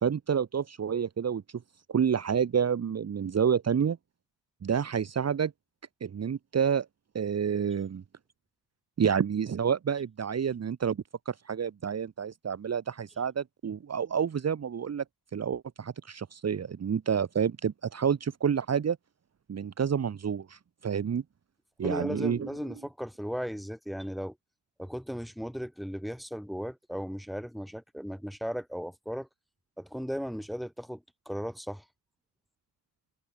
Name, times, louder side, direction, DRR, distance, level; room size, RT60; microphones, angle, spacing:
voice 1, 0.0-1.4 1.9-4.0 4.6-5.5 6.0-6.9 7.1-8.0 9.0-11.0 11.2-15.0 15.3-19.0 19.5-21.2 21.8-22.5, right 7 dB, 40° right, 1.5 m, -29 dB
voice 2, 21.8-24.3 24.8-29.3 29.8-31.8, equal, ahead, 3.5 m, -36 dB
cardioid pair, 75°, 38 cm